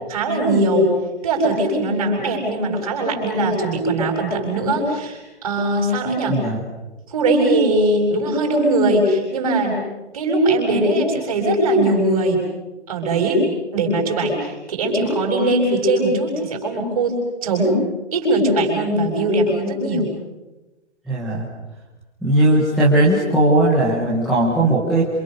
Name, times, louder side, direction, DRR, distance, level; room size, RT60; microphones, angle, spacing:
voice 1, 0.1-0.9 1.2-6.4 7.1-9.8 10.1-12.4 12.9-13.4 13.7-17.8 18.1-20.1, right 1 dB, 30° right, 2 dB, 6.3 m, -20 dB
voice 2, 21.1-21.4 22.2-25.1, right 1 dB, ahead, -8 dB, 0.9 m, -17 dB
28.0 x 27.5 x 6.5 m, 1.1 s
hypercardioid pair, 180°, 35 cm